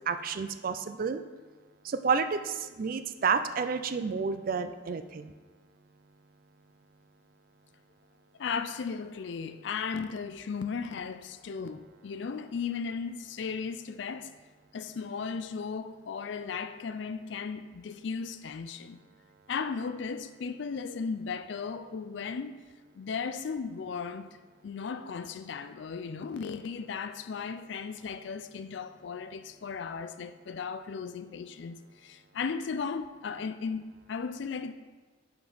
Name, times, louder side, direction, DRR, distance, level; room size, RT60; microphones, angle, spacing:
voice 1, 0.1-1.2 1.8-5.3, right 5 dB, 45° right, 0.3 m, -30 dB
voice 2, 8.4-14.3 14.7-19.0 19.5-22.6 22.9-24.4 24.6-34.7, left 5 dB, 60° left, 0.4 m, -36 dB
5.9 x 5.1 x 5.5 m
head